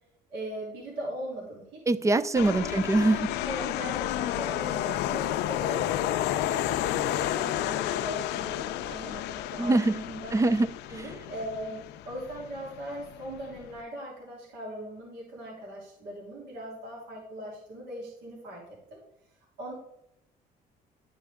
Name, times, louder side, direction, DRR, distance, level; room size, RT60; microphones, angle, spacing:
voice 1, 0.3-1.8 2.4-2.7 3.4-10.3 10.9-18.6 18.9-19.0 19.6-19.7, right 1 dB, 80° right, 3.1 m, -40 dB
voice 2, 1.9-3.4 9.6-10.0 10.3-10.7, right 2 dB, 20° right, 0.5 m, -23 dB
sound 1, 2.3-13.8, left 12 dB, 80° left, 0.5 m, -31 dB
11.5 x 6.3 x 3.5 m
cardioid pair, 110°, 17 cm